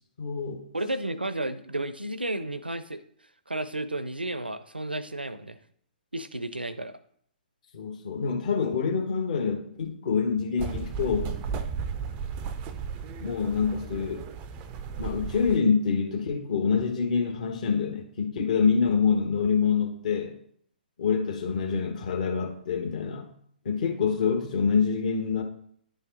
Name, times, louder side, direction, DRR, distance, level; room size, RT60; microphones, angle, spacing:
voice 1, 0.2-0.6 7.7-11.4 13.2-14.2 15.0-20.3 21.0-23.3 23.6-25.4, left 6 dB, 45° left, 3 dB, 1.2 m, -26 dB
voice 2, 0.7-3.0 3.5-5.6 6.1-6.9, right 1 dB, 85° right, 13 dB, 0.6 m, -32 dB
sound 1, 10.6-15.6, right 6 dB, 20° right, 0.4 m, -34 dB
10.5 x 4.1 x 4.0 m, 0.65 s
figure-of-eight pair, 125°, 5 cm